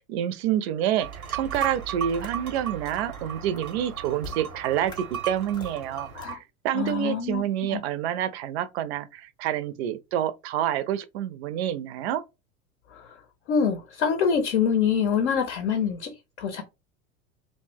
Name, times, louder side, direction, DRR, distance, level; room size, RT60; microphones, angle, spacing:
voice 1, 0.1-6.4 6.6-12.2, right 10 dB, 50° right, 0.5 m, -28 dB
sound 1, 1.0-6.4, right 9 dB, 85° right, 0.7 m, -36 dB
sound 2, 1.5-1.7 2.2-2.3 2.9-3.0 3.6-3.7 4.2-4.4 4.9-5.0 5.5-5.7 6.2-6.3 6.9-7.0, left 3 dB, 10° left, 0.3 m, -40 dB
voice 2, 6.7-7.4 7.7-7.8 12.9-13.2 13.5-16.1 16.4-16.6, left 6 dB, 55° left, 0.7 m, -25 dB
2.6 x 2.0 x 3.6 m
figure-of-eight pair, 85°, 42 cm